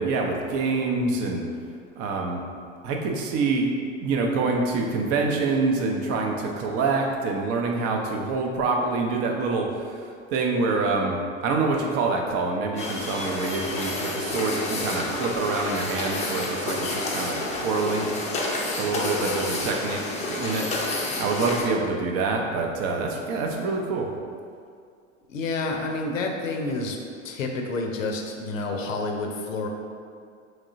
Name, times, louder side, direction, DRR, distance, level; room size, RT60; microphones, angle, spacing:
voice 1, 0.0-1.4 2.0-2.4 2.8-3.7 4.0-18.1 18.8-20.0 20.3-20.7 21.2-24.1, right 3 dB, 40° right, 1 dB, 0.5 m, -26 dB
sound 1, 12.8-21.6, left 2 dB, 20° left, 0.5 m, -29 dB
voice 2, 25.3-27.0 27.2-29.7, left 3 dB, 80° left, 3 dB, 0.6 m, -29 dB
3.6 x 3.1 x 2.5 m, 2.2 s
figure-of-eight pair, 85°, 39 cm